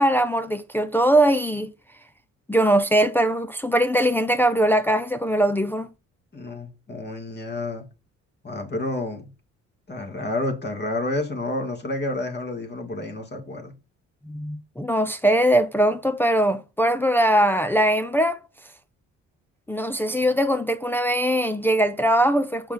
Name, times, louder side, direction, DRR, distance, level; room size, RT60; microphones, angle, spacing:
voice 1, 0.0-1.7 2.5-5.9 14.3-18.4 19.7-22.7, right 1 dB, 5° left, 0.6 m, -21 dB
voice 2, 6.3-7.8 8.4-9.3 9.9-13.7, left 2 dB, 35° left, 2.8 m, -29 dB
7.2 x 5.5 x 3.9 m
cardioid pair, 90°, 30 cm